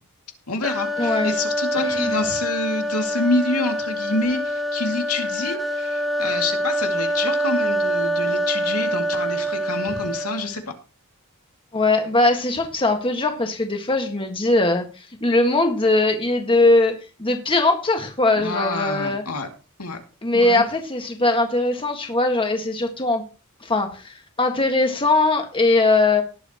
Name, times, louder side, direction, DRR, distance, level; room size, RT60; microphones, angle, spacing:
voice 1, 0.5-10.7 18.4-19.5 19.8-20.0 20.3-20.6, left 3 dB, 80° left, 3 dB, 2.4 m, -27 dB
sound 1, 0.6-10.6, right 1 dB, ahead, 1.1 m, -25 dB
voice 2, 1.0-1.3 1.8-2.2 11.7-19.2 20.2-23.2 23.6-26.2, left 2 dB, 25° left, 4 dB, 1.6 m, -20 dB
18.5 x 8.0 x 3.0 m, 0.33 s
head